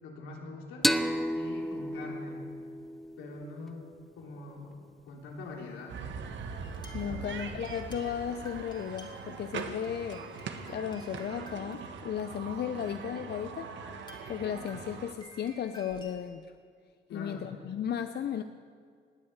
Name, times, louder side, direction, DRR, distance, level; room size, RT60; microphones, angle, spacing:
voice 1, 0.0-0.9 1.3-2.4 3.2-3.9 4.2-4.8 5.1-6.0 6.9-7.3 17.1-17.5, left 3 dB, 85° left, -1 dB, 3.6 m, -43 dB
sound 1, 0.8-4.2, equal, ahead, 0.8 m, -32 dB
sound 2, 5.9-15.1, right 5 dB, 70° right, 1.6 m, -41 dB
sound 3, 6.6-12.6 13.3-13.4 13.9-16.2, equal, 20° left, 3.0 m, -54 dB
voice 2, 6.9-10.2 10.7-13.7 14.3-16.5 17.1-18.4, left 8 dB, 55° left, 9 dB, 0.7 m, -35 dB
20.0 x 8.8 x 8.2 m, 2.1 s
cardioid pair, 90°, 20 cm